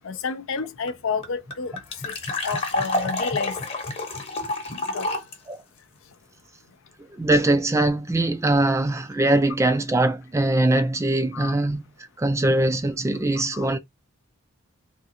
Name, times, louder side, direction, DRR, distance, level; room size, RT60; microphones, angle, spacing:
voice 1, 0.0-3.6 4.9-5.1 11.3-11.6 13.5-13.8, left 5 dB, 65° left, 0.5 m, -31 dB
sound 1, 0.6-0.7 0.9-1.0 1.2-5.3, left 2 dB, 30° left, 0.9 m, -28 dB
voice 2, 7.1-11.8 12.2-13.8, right 2 dB, 15° right, 0.3 m, -22 dB
3.5 x 2.4 x 2.8 m
head